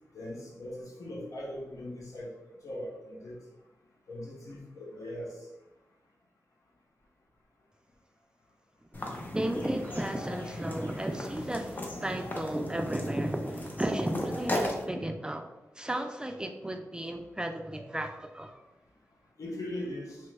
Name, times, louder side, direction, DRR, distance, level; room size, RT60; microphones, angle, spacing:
voice 1, 0.1-2.3 2.6-3.4 4.1-5.3 19.4-20.2, left 1 dB, 75° left, -1 dB, 0.7 m, -39 dB
sound 1, 8.9-14.8, left 1 dB, 35° left, 0.6 m, -37 dB
voice 2, 9.3-15.5 15.8-18.6, right 1 dB, 15° right, 5 dB, 0.3 m, -33 dB
2.9 x 2.2 x 3.2 m, 1.0 s
cardioid pair, 60°, 6 cm